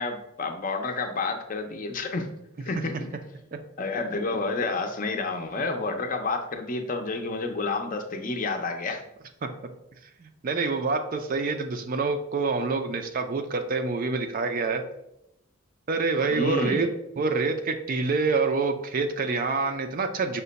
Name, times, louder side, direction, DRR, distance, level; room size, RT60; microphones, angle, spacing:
voice 1, 0.0-2.4 2.6-3.0 3.8-9.0 16.3-16.9, left 3 dB, 40° left, 5 dB, 0.5 m, -29 dB
voice 2, 10.2-14.8 15.9-16.9 17.2-20.4, right 4 dB, 45° right, 7 dB, 0.4 m, -26 dB
5.6 x 2.2 x 3.9 m, 0.82 s
head